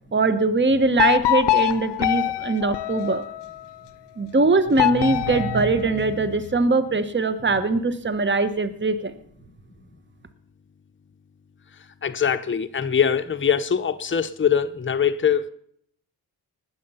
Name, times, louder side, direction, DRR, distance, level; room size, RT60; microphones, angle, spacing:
voice 1, 0.1-3.2 4.2-9.1, right 3 dB, 25° right, 1.1 m, -21 dB
sound 1, 1.0-3.7 4.8-6.5, left 16 dB, 90° left, 0.5 m, -24 dB
voice 2, 12.0-15.5, left 7 dB, 30° left, 0.8 m, -22 dB
19.0 x 7.7 x 5.6 m
cardioid pair, 50°, 41 cm